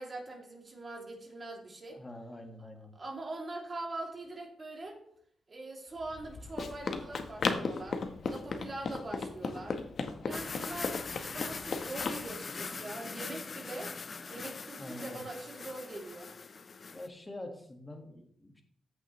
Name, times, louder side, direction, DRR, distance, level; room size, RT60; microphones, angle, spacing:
voice 1, 0.0-2.0 2.9-5.0 5.5-8.0 8.3-9.8 10.2-11.0 11.3-13.9 14.3-16.3, right 2 dB, 35° right, -1 dB, 2.5 m, -42 dB
voice 2, 1.9-2.9 14.8-15.2 16.9-18.6, left 1 dB, 15° left, 3 dB, 1.6 m, -45 dB
Run, 6.0-12.2, left 4 dB, 55° left, 1.0 m, -36 dB
sound 1, 10.3-17.1, left 4 dB, 40° left, 0.4 m, -41 dB
14.0 x 6.1 x 3.1 m, 0.65 s
wide cardioid pair, 125°, 0 cm